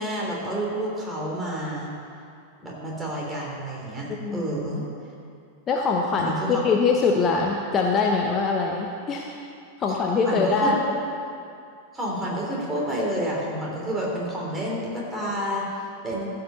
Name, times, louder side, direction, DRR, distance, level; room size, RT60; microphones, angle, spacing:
voice 1, 0.0-1.9 2.6-4.8 6.2-6.6 9.9-10.0 10.2-10.7 11.9-16.3, right 1 dB, 10° right, -4 dB, 3.2 m, -29 dB
voice 2, 5.7-9.3 9.8-10.8, left 4 dB, 25° left, 0 dB, 0.9 m, -23 dB
14.5 x 5.6 x 6.8 m, 2.5 s
figure-of-eight pair, 90°, 0 cm